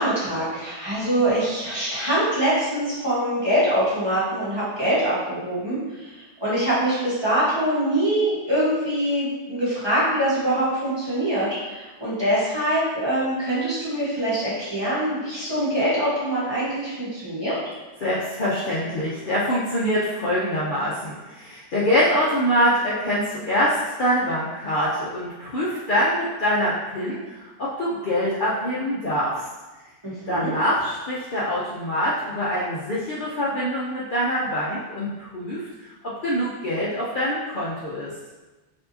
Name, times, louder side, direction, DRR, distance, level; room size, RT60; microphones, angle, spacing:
voice 1, 0.0-17.5 30.0-30.5, right 1 dB, 20° right, -10 dB, 1.3 m, -24 dB
voice 2, 18.0-29.5 30.3-35.9 36.2-38.1, equal, 55° left, -7 dB, 0.7 m, -24 dB
4.5 x 2.7 x 2.6 m, 1.2 s
omnidirectional pair, 1.2 m